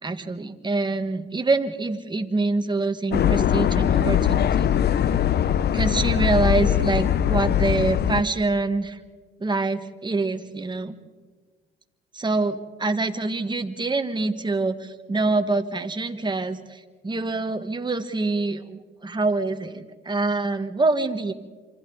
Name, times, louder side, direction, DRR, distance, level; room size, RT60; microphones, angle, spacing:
voice 1, 0.0-4.7 5.7-9.0 9.4-10.9 12.1-21.3, right 3 dB, 20° right, 7 dB, 1.5 m, -25 dB
sound 1, 3.1-8.2, left 10 dB, 55° left, 0.7 m, -21 dB
28.0 x 26.0 x 4.0 m, 1.4 s
cardioid pair, 90°, 20 cm